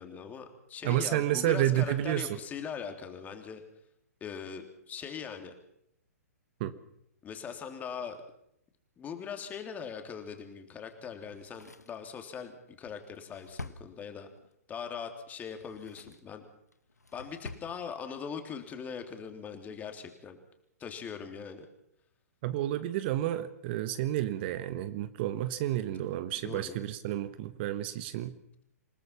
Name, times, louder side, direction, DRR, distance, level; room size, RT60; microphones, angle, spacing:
voice 1, 0.0-3.6 4.2-5.5 7.2-8.2 9.0-14.3 14.7-16.5 17.1-20.4 20.8-21.7 26.4-26.8, left 7 dB, 20° left, 5 dB, 3.2 m, -41 dB
voice 2, 0.8-2.3 6.6-6.7 22.4-28.4, right 13 dB, 40° right, 13 dB, 1.2 m, -30 dB
Drawer open or close, 11.2-14.5 15.4-16.3 16.7-17.7 18.0-18.1, left 3 dB, 90° left, 1.3 m, -47 dB
28.0 x 18.5 x 5.8 m, 0.74 s
figure-of-eight pair, 120°, 9 cm